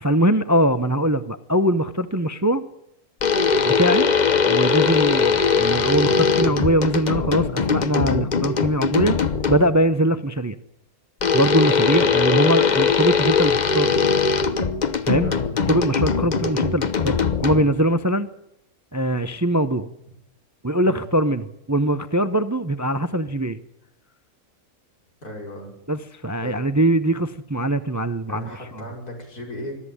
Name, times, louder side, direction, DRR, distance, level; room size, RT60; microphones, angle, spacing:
voice 1, 0.0-2.7 3.7-4.1 4.5-9.2 9.5-10.6 11.3-13.9 15.0-15.3 15.7-18.3 18.9-19.9 20.6-23.6 25.9-28.8, right 1 dB, 20° right, 12 dB, 0.5 m, -22 dB
sound 1, 3.2-9.8 11.2-17.9, left 5 dB, 35° left, 0.9 m, -20 dB
voice 2, 25.2-25.7 26.4-26.7 28.3-29.8, left 1 dB, 80° left, 1 dB, 5.9 m, -36 dB
22.0 x 13.0 x 10.0 m, 0.83 s
omnidirectional pair, 1.6 m